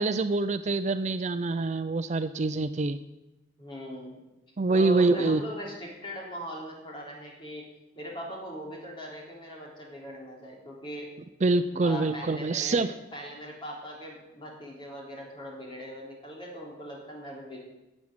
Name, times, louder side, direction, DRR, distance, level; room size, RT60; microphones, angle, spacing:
voice 1, 0.0-3.0 4.6-5.4 11.4-12.9, right 3 dB, 35° right, 11 dB, 0.4 m, -25 dB
voice 2, 3.6-4.2 4.7-7.6 8.0-11.1 11.7-12.8 13.1-17.6, equal, 25° left, -2 dB, 3.7 m, -40 dB
13.0 x 7.4 x 9.6 m, 1.0 s
head